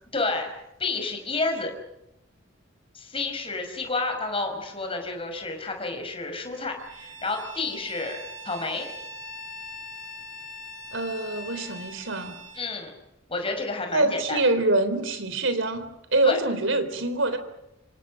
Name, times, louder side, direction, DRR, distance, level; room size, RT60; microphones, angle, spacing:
voice 1, 0.1-0.5 0.8-1.7 2.9-8.2 8.4-8.9 12.6-12.9 13.3-14.4 16.2-16.4, left 3 dB, 30° left, 4 dB, 5.5 m, -30 dB
Bowed string instrument, 6.8-12.7, left 1 dB, 40° right, 6.0 m, -41 dB
voice 2, 10.9-12.4 13.9-17.4, right 2 dB, 75° right, 10 dB, 3.7 m, -25 dB
27.0 x 26.5 x 6.4 m, 0.86 s
head